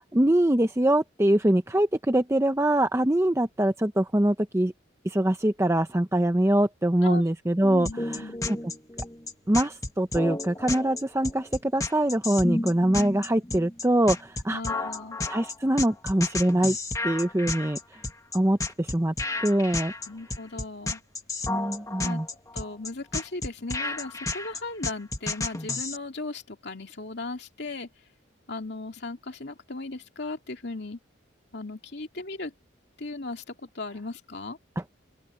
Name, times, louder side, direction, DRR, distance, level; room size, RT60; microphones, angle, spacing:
voice 1, 0.1-4.7 5.0-8.6 9.5-14.6 15.3-16.8 17.0-18.0 18.3-19.1 19.4-19.9 21.5-22.3, right 1 dB, 15° right, 0.7 m, -24 dB
voice 2, 7.6-8.4 14.5-15.2 20.1-21.0 22.0-22.2 22.5-27.9 28.5-31.0 31.5-32.5 33.0-34.6, left 2 dB, 55° left, 2.7 m, -37 dB
sound 1, 7.9-26.0, left 2 dB, 15° left, 1.6 m, -32 dB
open air
head